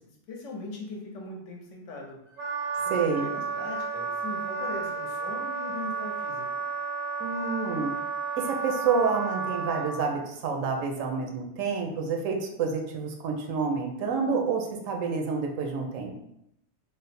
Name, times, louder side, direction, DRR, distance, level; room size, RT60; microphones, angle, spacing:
voice 1, 0.0-2.2 2.8-6.6, left 2 dB, 65° left, 0 dB, 1.0 m, -40 dB
Wind instrument woodwind instrument, 2.4-9.9, right 4 dB, 45° right, 0.5 m, -32 dB
voice 2, 2.9-3.3 7.2-7.9 8.4-16.1, right 5 dB, 75° right, 2 dB, 0.9 m, -28 dB
3.2 x 2.0 x 4.1 m, 0.80 s
omnidirectional pair, 1.4 m